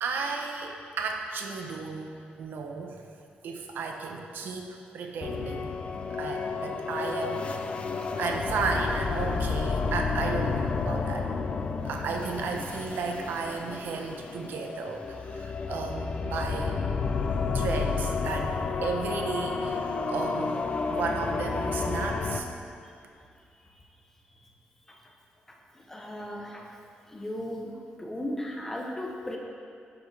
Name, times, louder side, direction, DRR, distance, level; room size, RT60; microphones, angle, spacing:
voice 1, 0.0-3.1 3.4-5.7 6.1-7.7 8.2-11.3 11.8-16.8 17.5-20.6 20.9-22.5, right 4 dB, 80° right, 3 dB, 0.8 m, -34 dB
sound 1, 5.2-22.4, left 4 dB, 35° left, 0.4 m, -31 dB
voice 2, 25.7-26.7 27.1-27.7 28.0-29.4, left 1 dB, 10° left, -1 dB, 0.8 m, -36 dB
11.0 x 6.0 x 3.4 m, 2.5 s
wide cardioid pair, 175°, 3 cm